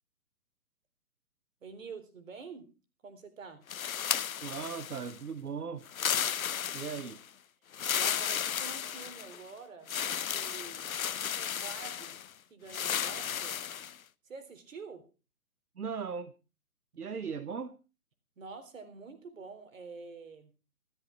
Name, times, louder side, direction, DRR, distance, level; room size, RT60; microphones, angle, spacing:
voice 1, 1.6-2.7 3.0-3.6 7.8-11.0 11.4-12.2 12.5-13.6 14.2-15.1 18.4-20.5, right 5 dB, 60° right, 10 dB, 3.8 m, -47 dB
sound 1, 3.7-5.2 5.9-7.2 7.7-9.4 9.9-12.3 12.7-14.0, left 9 dB, 65° left, 0.8 m, -34 dB
voice 2, 4.4-5.9 6.7-7.2 15.8-16.3 16.9-17.8, right 6 dB, 80° right, 13 dB, 1.2 m, -38 dB
13.5 x 13.5 x 4.5 m, 0.33 s
figure-of-eight pair, 140°, 44 cm